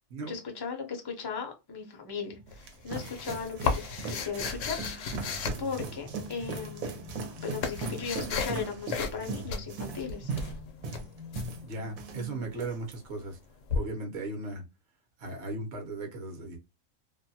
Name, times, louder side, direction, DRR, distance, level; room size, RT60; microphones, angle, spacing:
voice 1, 0.2-5.1 5.6-7.1 7.4-10.3, left 6 dB, 40° left, 0.3 m, -37 dB
sound 1, 2.3-12.2 12.5-12.9, right 4 dB, 80° right, 1.1 m, -39 dB
sound 2, 2.5-6.3 7.1-8.6 8.9-9.2 9.5-11.5 13.7-13.8, left 5 dB, 70° left, 0.9 m, -34 dB
sound 3, 5.1-12.7, equal, 40° right, 0.4 m, -47 dB
voice 2, 11.6-13.4 13.7-14.6 15.2-16.6, right 2 dB, 55° right, 1.0 m, -37 dB
2.6 x 2.2 x 2.7 m
omnidirectional pair, 1.5 m